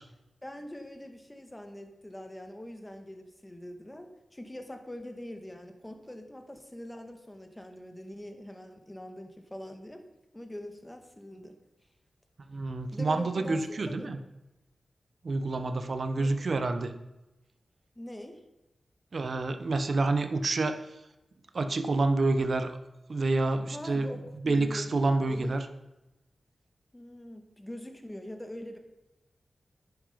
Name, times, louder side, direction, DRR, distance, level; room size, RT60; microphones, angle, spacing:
voice 1, 0.4-10.0 10.3-11.6 12.9-14.1 16.2-16.3 17.9-18.4 23.7-25.6 26.9-28.8, left 1 dB, 15° left, 5 dB, 1.7 m, -43 dB
voice 2, 12.5-14.2 15.2-16.9 19.1-20.8 21.5-22.8 23.1-24.1 24.4-25.6, right 3 dB, 60° right, 8 dB, 1.0 m, -28 dB
10.5 x 9.6 x 5.2 m, 0.96 s
wide cardioid pair, 75°, 0 cm